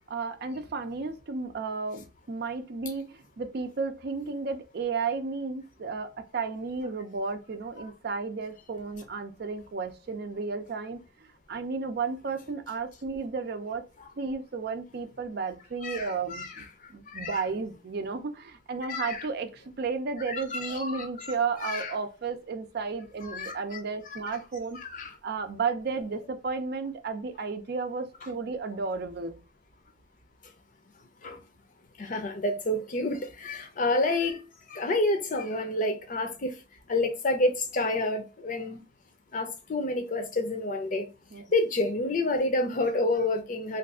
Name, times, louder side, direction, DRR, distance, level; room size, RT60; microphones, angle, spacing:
voice 1, 0.0-11.0 11.5-13.8 14.2-16.6 16.9-24.8 25.2-29.4 41.3-41.5, right 4 dB, 60° right, 0.5 m, -33 dB
voice 2, 15.8-16.6 17.1-17.4 18.9-19.3 20.3-21.4 21.6-21.9 23.2-23.6 24.1-24.4 24.8-25.1 31.2-31.4 32.0-34.4 34.7-36.5 36.9-38.8 39.3-41.1 41.5-43.8, left 2 dB, 45° left, 0.6 m, -29 dB
2.6 x 2.4 x 3.5 m
head